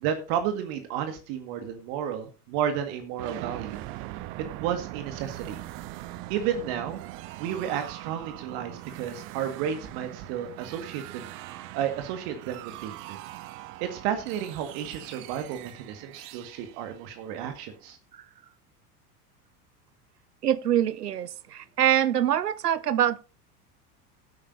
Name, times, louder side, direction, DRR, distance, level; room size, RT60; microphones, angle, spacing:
voice 1, 0.0-3.8 4.6-5.6 6.3-7.0 7.4-11.3 11.7-13.2 13.8-18.0, right 9 dB, 45° right, 2.0 m, -32 dB
sound 1, 3.2-17.9, right 16 dB, 30° right, 0.5 m, -42 dB
voice 2, 20.4-23.2, right 10 dB, 75° right, 0.8 m, -24 dB
16.5 x 8.9 x 2.7 m
figure-of-eight pair, 80°, 48 cm